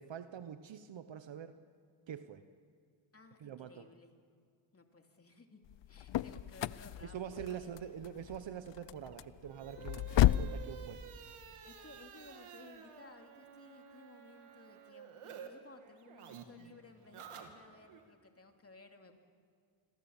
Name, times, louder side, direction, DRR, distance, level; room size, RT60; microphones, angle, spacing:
voice 1, 0.0-1.6 2.1-2.4 3.4-3.8 7.0-10.0 10.4-11.1, right 9 dB, 60° right, 10 dB, 1.1 m, -45 dB
voice 2, 3.1-4.1 4.7-7.7 11.6-19.2, left 3 dB, 25° left, 4 dB, 2.8 m, -58 dB
sound 1, 5.7-10.6, left 13 dB, 60° left, 0.6 m, -33 dB
sound 2, 8.9-15.5 15.8-18.0, right 8 dB, 85° right, 2.7 m, -52 dB
28.5 x 22.0 x 7.3 m, 2.1 s
cardioid pair, 95°, 50 cm